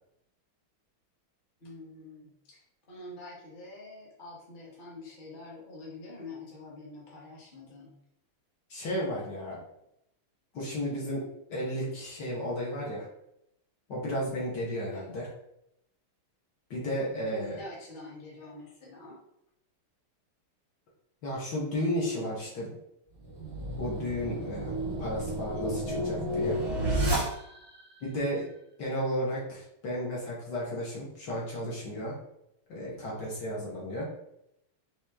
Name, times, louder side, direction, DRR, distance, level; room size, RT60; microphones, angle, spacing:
voice 1, 1.6-8.0 14.9-15.1 17.3-19.2, left 2 dB, 30° left, -4 dB, 1.1 m, -46 dB
voice 2, 8.7-9.6 10.5-11.2 11.5-13.1 13.9-15.3 16.7-17.6 21.2-22.7 23.8-26.6 28.0-28.5 28.8-32.2 32.7-34.1, equal, 55° left, -4 dB, 1.7 m, -33 dB
sound 1, 23.2-27.8, right 1 dB, 15° right, 0.9 m, -31 dB
4.8 x 3.1 x 3.5 m, 0.79 s
omnidirectional pair, 2.4 m